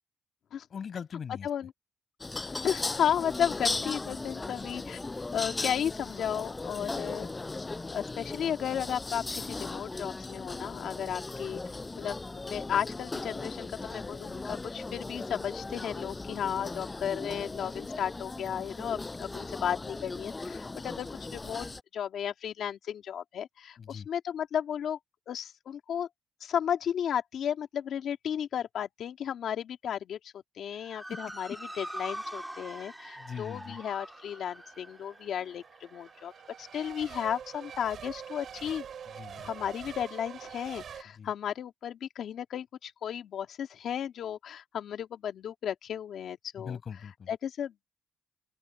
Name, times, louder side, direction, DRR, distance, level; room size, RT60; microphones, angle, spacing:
voice 1, 0.7-1.5 23.8-24.1 31.1-31.2 33.2-33.8 39.1-39.5 41.2-41.3 46.6-47.3, left 7 dB, 40° left, 7.4 m, -41 dB
sound 1, 2.2-21.8, left 3 dB, 15° left, 5.8 m, -37 dB
voice 2, 2.6-5.0 5.3-7.3 7.9-11.6 12.0-21.7 21.9-25.0 25.3-26.1 26.4-36.3 36.6-38.9 39.4-46.8 47.3-47.7, left 9 dB, 60° left, 2.4 m, -34 dB
Motor vehicle (road) / Siren, 30.7-39.3, right 1 dB, 5° right, 3.2 m, -45 dB
Race car auto racing / Accelerating revving vroom / Mechanisms, 33.2-41.0, right 8 dB, 50° right, 3.5 m, -46 dB
open air
cardioid pair, 160°, 0 cm